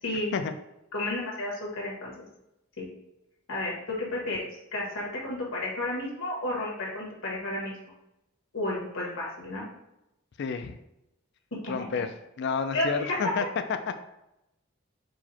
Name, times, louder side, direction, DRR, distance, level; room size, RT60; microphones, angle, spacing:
voice 1, 0.0-0.3 0.9-2.1 2.8-2.9 3.5-7.7 8.5-9.7 11.5-11.7 12.7-13.2, left 1 dB, 80° left, -3 dB, 1.5 m, -32 dB
voice 2, 10.4-10.8 11.7-12.1 12.4-13.5, left 5 dB, 55° left, 8 dB, 0.4 m, -30 dB
4.7 x 2.1 x 4.2 m, 0.87 s
head